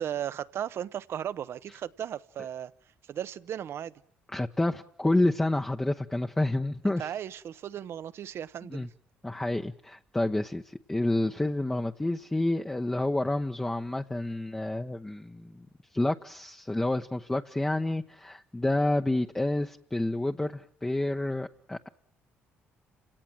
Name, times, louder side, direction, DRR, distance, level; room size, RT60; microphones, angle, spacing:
voice 1, 0.0-2.7 3.1-3.9 6.8-8.9, right 10 dB, 65° right, 1.0 m, -36 dB
voice 2, 4.3-7.1 8.7-8.9 9.2-15.7 15.9-21.9, left 2 dB, 10° left, 1.0 m, -29 dB
30.0 x 18.0 x 7.6 m
supercardioid pair, 75°, 5 cm